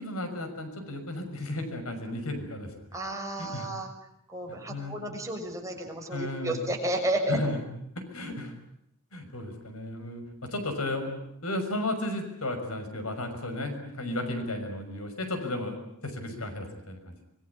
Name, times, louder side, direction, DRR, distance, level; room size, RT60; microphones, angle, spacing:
voice 1, 0.0-2.7 3.4-3.7 4.5-5.0 6.1-6.6 7.3-7.6 8.1-8.5 9.1-11.1 11.4-17.1, left 1 dB, 75° left, 6 dB, 6.2 m, -34 dB
voice 2, 2.9-3.9 4.3-7.4, right 1 dB, 15° right, 1 dB, 6.2 m, -32 dB
26.0 x 22.0 x 9.6 m, 0.77 s
head